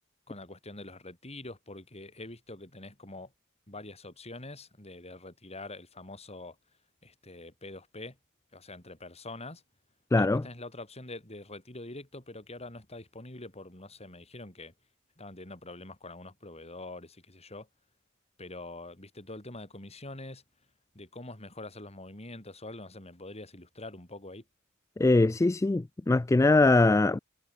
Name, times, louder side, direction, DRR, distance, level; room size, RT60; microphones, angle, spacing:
voice 1, 0.3-3.3 3.7-6.6 7.0-8.2 8.5-9.6 10.2-14.7 15.2-17.7 18.4-20.4 20.9-24.4, left 2 dB, 30° left, 5.8 m, -45 dB
voice 2, 10.1-10.4 25.0-27.2, left 2 dB, 15° left, 0.3 m, -22 dB
head